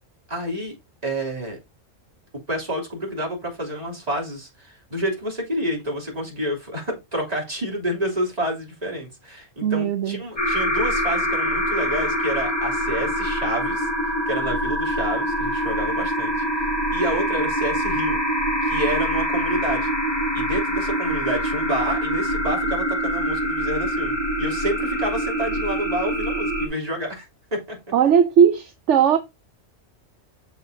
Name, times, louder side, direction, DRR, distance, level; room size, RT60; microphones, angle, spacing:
voice 1, 0.3-0.7 1.0-1.6 2.5-13.9 14.3-16.3 16.9-18.2 18.6-19.9 20.3-27.3 27.5-27.8, equal, 30° right, 3.2 m, -28 dB
voice 2, 9.6-10.2 27.9-29.2, right 8 dB, 70° right, 1.0 m, -18 dB
sound 1, 10.4-26.7, equal, 20° left, 2.2 m, -24 dB
7.7 x 7.5 x 2.7 m
omnidirectional pair, 1.3 m